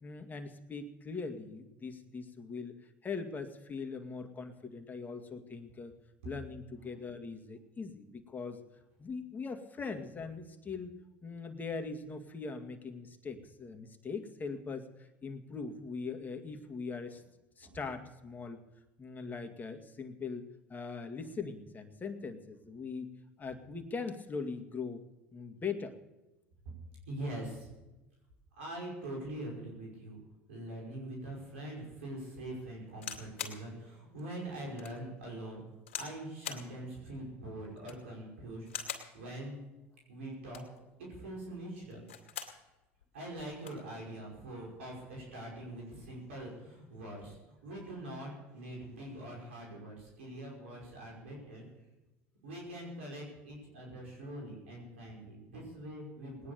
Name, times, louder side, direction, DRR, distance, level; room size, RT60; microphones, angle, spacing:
voice 1, 0.0-2.7 3.0-5.9 6.2-8.6 9.0-10.9 11.2-14.9 15.2-17.2 17.6-18.6 19.0-20.4 20.7-23.1 23.4-25.0 25.3-26.0, left 4 dB, 25° left, 6 dB, 2.1 m, -41 dB
voice 2, 27.1-27.7 28.6-30.2 30.5-35.6 36.0-38.7 39.1-39.6 40.1-40.6 41.0-42.0 43.1-51.7 52.4-56.5, right 1 dB, 85° right, -2 dB, 5.3 m, -43 dB
sound 1, 32.9-33.6 34.2-34.3 34.8-35.0 35.9-36.2 36.4-36.7 37.7-38.1 38.7-39.1 40.3-40.8 41.9-42.6 43.0-43.1 43.3-43.8 44.7-44.9, left 8 dB, 85° left, 2.3 m, -42 dB
19.0 x 10.0 x 6.8 m, 1.0 s
hypercardioid pair, 85°, 7 cm